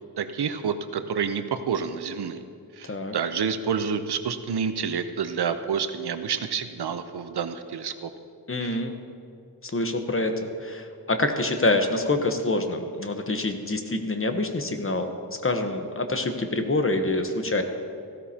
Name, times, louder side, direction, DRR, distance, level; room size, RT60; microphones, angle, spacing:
voice 1, 0.2-2.4 2.8-8.1 8.6-8.8, right 6 dB, 75° right, 10 dB, 0.7 m, -29 dB
voice 2, 8.5-8.9 9.6-15.1 15.4-17.6, left 2 dB, 30° left, 6 dB, 1.0 m, -26 dB
16.0 x 13.0 x 2.8 m, 2.4 s
cardioid pair, 65°, 40 cm